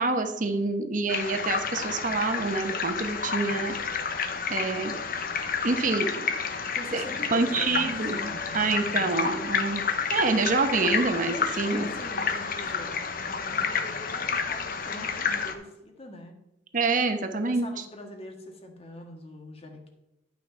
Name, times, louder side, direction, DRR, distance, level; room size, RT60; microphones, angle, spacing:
voice 1, 0.0-3.7 4.5-4.9 5.6-6.3 6.9-7.0 7.3-9.8 10.1-11.9 16.7-17.7, right 3 dB, 50° right, 6 dB, 1.0 m, -27 dB
sound 1, 1.1-15.5, left 6 dB, 55° left, 1.0 m, -30 dB
voice 2, 6.7-7.9 8.2-9.2 11.3-12.9 13.2-16.4 17.4-19.9, left 1 dB, 35° left, 3 dB, 1.7 m, -43 dB
11.0 x 5.9 x 4.5 m, 0.91 s
head